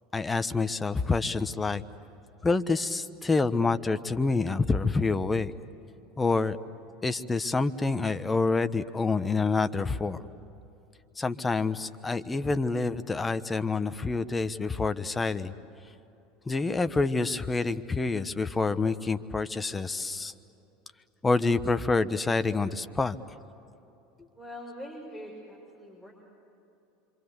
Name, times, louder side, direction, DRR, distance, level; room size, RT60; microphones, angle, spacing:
voice 1, 0.1-1.8 2.4-5.5 6.2-6.6 7.0-10.2 11.2-15.5 16.5-20.3 21.2-23.2, left 3 dB, 15° left, 11 dB, 1.1 m, -27 dB
voice 2, 24.3-26.1, equal, 10° right, -2 dB, 6.2 m, -43 dB
26.5 x 25.5 x 8.3 m, 2.9 s
hypercardioid pair, 75°, 0 cm